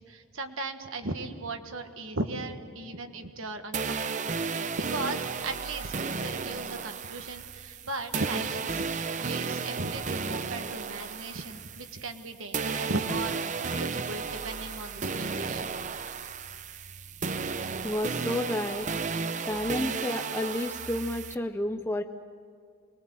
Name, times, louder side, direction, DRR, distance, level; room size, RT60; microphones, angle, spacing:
voice 1, 0.0-8.8 9.2-15.7, right 2 dB, 70° right, 7 dB, 1.5 m, -37 dB
sound 1, 3.7-12.2 12.5-21.3, right 5 dB, 35° right, 0.6 m, -33 dB
voice 2, 17.8-18.9 19.4-22.0, left 1 dB, 10° left, 5 dB, 0.6 m, -31 dB
24.5 x 20.5 x 7.7 m, 2.1 s
head